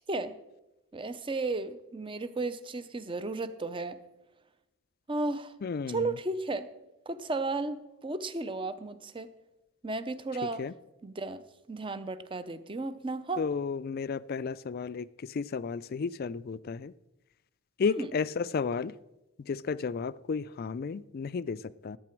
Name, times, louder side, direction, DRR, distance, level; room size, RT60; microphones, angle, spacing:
voice 1, 0.9-4.0 5.1-5.5 5.9-6.7 7.1-9.3 9.8-10.6 11.0-13.4 17.8-18.1, right 3 dB, 25° right, 13 dB, 0.6 m, -34 dB
voice 2, 5.6-6.2 10.6-10.7 13.4-16.9 17.8-18.9 19.4-22.0, left 5 dB, 45° left, 18 dB, 0.3 m, -33 dB
18.0 x 8.5 x 4.5 m, 0.98 s
head